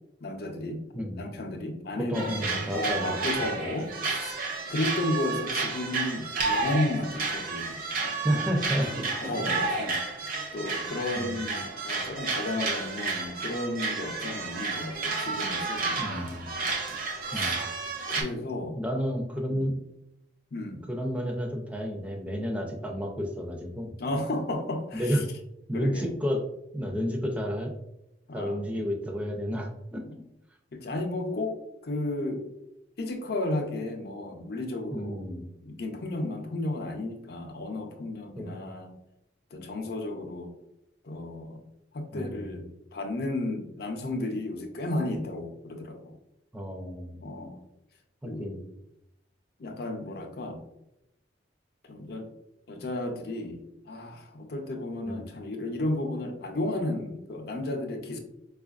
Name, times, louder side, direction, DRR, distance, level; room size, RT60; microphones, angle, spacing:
voice 1, 0.2-0.8 1.2-4.3 4.7-7.8 9.2-10.0 10.5-16.3 17.3-17.6 18.1-18.8 19.5-19.7 20.5-20.9 24.0-25.2 25.7-26.1 28.3-28.6 30.1-30.2 30.7-31.6 31.8-32.4 33.0-35.2 35.6-38.9 39.5-40.5 41.0-41.6 41.9-42.6 42.9-46.1 47.2-47.6 48.2-48.7 49.6-50.6 51.8-52.3 52.7-58.2, left 2 dB, 55° left, 4 dB, 0.6 m, -33 dB
voice 2, 2.1-3.3 3.6-3.7 8.2-9.3 11.1-11.4 16.0-16.6 17.3-17.7 18.8-19.8 20.7-23.9 24.9-25.2 25.7-26.4 26.7-27.7 28.3-30.0 34.9-35.5 38.4-38.6 42.1-42.6 46.5-47.2 48.2-48.6 55.0-55.2, equal, 5° right, 2 dB, 0.5 m, -31 dB
sound 1, 2.1-18.2, right 4 dB, 50° right, 0.7 m, -31 dB
4.6 x 2.4 x 2.4 m, 0.86 s
head